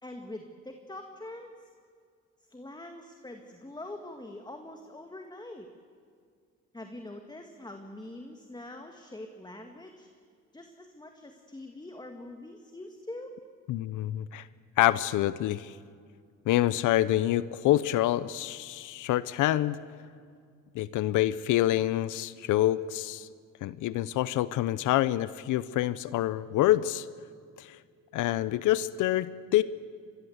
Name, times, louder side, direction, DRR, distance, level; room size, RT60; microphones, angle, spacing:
voice 1, 0.0-1.7 2.5-5.7 6.7-10.1 10.5-13.3, left 1 dB, 15° left, 4 dB, 2.1 m, -44 dB
voice 2, 13.7-14.5 14.8-15.8 16.5-19.8 20.7-23.3 23.6-27.1 27.6-27.8 28.1-29.6, left 14 dB, 85° left, 16 dB, 0.7 m, -26 dB
25.5 x 21.0 x 8.1 m, 2.1 s
cardioid pair, 90°, 30 cm